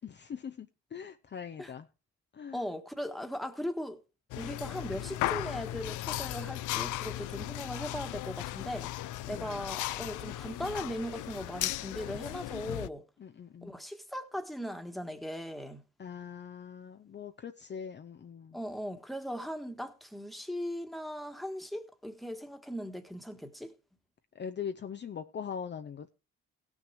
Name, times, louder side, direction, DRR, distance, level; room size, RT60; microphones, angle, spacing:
voice 1, 0.0-1.9 2.3-2.6 9.3-9.6 13.2-13.7 16.0-18.6 24.3-26.1, left 7 dB, 35° left, 0.7 m, -42 dB
voice 2, 2.5-4.0 4.4-8.9 9.3-13.0 13.6-15.8 18.5-23.7, equal, ahead, 1.5 m, -38 dB
sound 1, 4.3-12.9, left 15 dB, 80° left, 0.5 m, -36 dB
16.5 x 6.3 x 4.6 m
cardioid pair, 90°, 30 cm